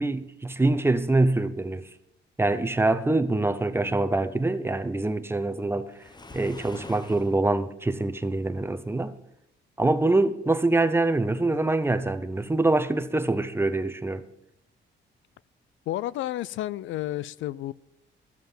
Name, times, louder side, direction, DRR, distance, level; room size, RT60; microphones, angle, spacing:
voice 1, 0.0-1.8 2.4-5.9 6.3-9.1 9.8-14.2, right 2 dB, 10° right, 0.8 m, -24 dB
Waves surf, 5.9-7.4, left 3 dB, 20° left, 1.0 m, -44 dB
voice 2, 15.9-17.7, left 14 dB, 75° left, 0.4 m, -31 dB
13.0 x 7.8 x 7.2 m
cardioid pair, 90°, 20 cm